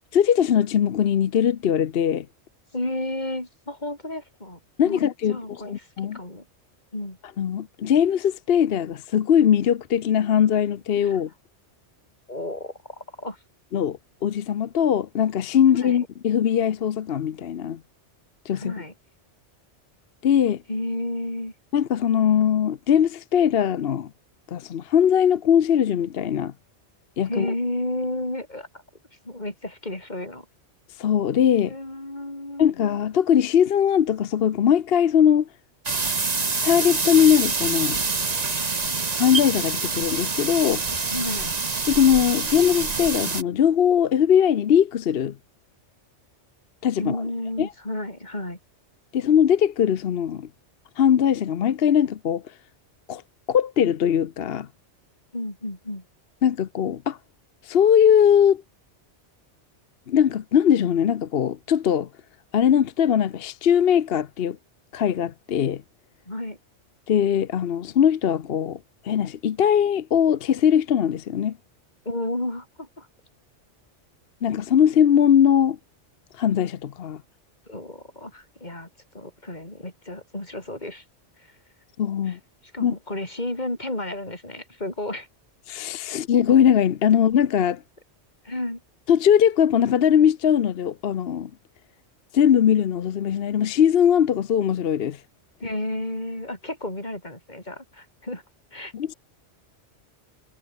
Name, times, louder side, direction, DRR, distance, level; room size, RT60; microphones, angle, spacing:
voice 1, 0.1-2.3 4.8-6.2 7.4-11.3 13.7-17.8 18.5-18.7 20.2-20.6 21.7-24.1 24.5-26.5 27.2-27.5 31.0-31.7 32.6-35.5 36.6-38.0 39.1-40.8 41.9-45.4 46.8-47.2 47.6-47.7 49.1-50.5 51.0-52.4 53.1-53.2 53.5-54.7 56.4-57.2 57.6-58.6 60.1-62.1 62.5-64.6 64.9-65.8 67.1-68.8 69.0-71.6 74.4-75.8 76.4-77.2 82.0-82.4 82.8-82.9 85.7-87.8 89.1-91.5 92.3-95.2 98.9-99.1, left 9 dB, 60° left, 0.9 m, -20 dB
voice 2, 2.7-5.0 5.3-6.5 6.9-7.2 11.0-11.2 12.3-13.4 15.8-16.1 18.5-18.9 20.7-21.5 27.3-28.7 29.3-30.5 31.7-32.7 41.1-41.6 47.0-48.6 55.3-56.0 66.3-66.6 72.1-73.1 77.7-78.9 79.1-81.0 81.4-81.5 82.3-82.4 82.7-85.3 86.1-86.2 88.4-88.8 95.6-98.4 98.7-98.9, left 1 dB, 40° left, 5.2 m, -32 dB
sound 1, 35.9-43.4, right 4 dB, 35° right, 1.4 m, -26 dB
omnidirectional pair, 1.2 m